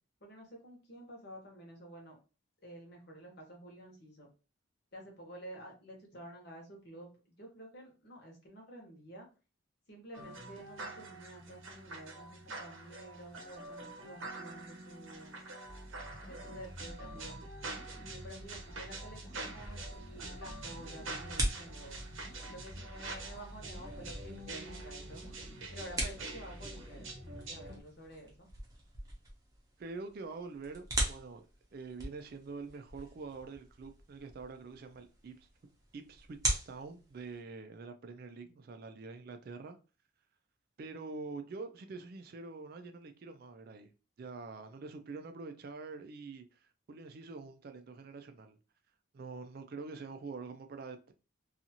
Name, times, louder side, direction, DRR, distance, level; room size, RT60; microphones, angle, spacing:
voice 1, 0.2-2.2 2.6-4.3 4.9-9.3 9.9-15.4 16.3-17.5 18.0-22.0 22.5-25.3 25.7-28.5, right 1 dB, 50° left, 1.0 m, -50 dB
sound 1, 10.1-27.8, right 2 dB, 70° right, 0.7 m, -46 dB
sound 2, 15.7-27.9, equal, 25° left, 0.5 m, -50 dB
sound 3, 19.6-37.4, right 1 dB, 15° right, 0.7 m, -42 dB
voice 2, 29.8-31.4 31.7-35.5 35.9-39.8 40.8-43.9 44.2-48.6 49.1-51.1, right 4 dB, 45° right, 0.3 m, -45 dB
2.6 x 2.4 x 2.8 m
head